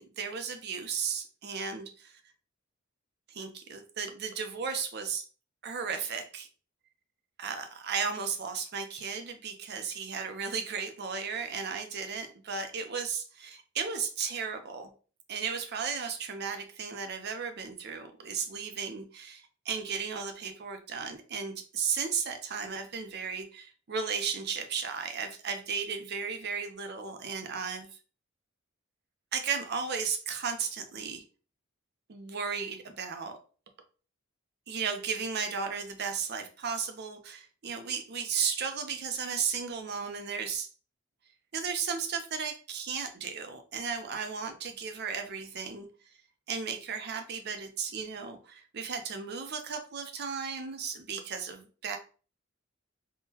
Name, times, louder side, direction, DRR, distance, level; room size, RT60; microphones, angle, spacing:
voice 1, 0.0-2.2 3.3-5.3 5.6-6.5 7.4-14.9 15.3-28.0 29.3-31.2 32.1-33.4 34.7-40.7 41.5-45.9 46.5-52.0, right 6 dB, 55° right, 7 dB, 0.6 m, -35 dB
3.6 x 2.2 x 2.7 m, 0.37 s
head